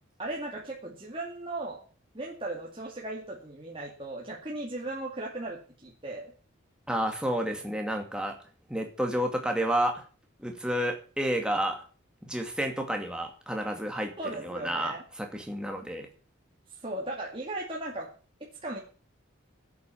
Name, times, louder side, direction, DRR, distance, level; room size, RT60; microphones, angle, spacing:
voice 1, 0.2-1.8 2.1-6.3 14.2-15.0 16.8-18.1 18.4-18.8, right 2 dB, 25° right, -3 dB, 2.3 m, -37 dB
voice 2, 6.9-8.4 8.7-10.0 10.4-11.8 12.2-16.1, right 1 dB, 5° right, 3 dB, 2.3 m, -30 dB
10.5 x 8.6 x 8.6 m, 0.40 s
head